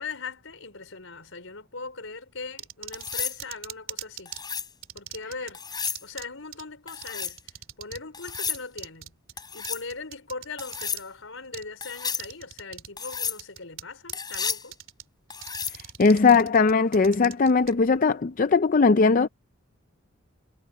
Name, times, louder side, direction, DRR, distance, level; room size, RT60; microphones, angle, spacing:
voice 1, 0.0-4.4 4.9-9.1 9.5-14.8, left 4 dB, 80° left, 4.6 m, -40 dB
sound 1, 2.6-4.4 4.8-5.5 5.9-6.3 6.5-6.6 7.0-8.0 8.3-11.0 11.5-11.7 12.1-12.9 13.1-13.8 14.1-15.0 15.3-17.7, right 11 dB, 85° right, 3.1 m, -40 dB
sound 2, 2.9-3.4 4.3-4.7 5.5-6.0 6.9-7.4 8.1-8.6 9.4-9.8 10.6-11.0 11.8-12.3 13.0-13.4 14.1-14.7 15.3-15.8 17.7-18.0, left 6 dB, 20° left, 6.3 m, -32 dB
voice 2, 16.0-19.3, left 4 dB, 40° left, 0.5 m, -19 dB
head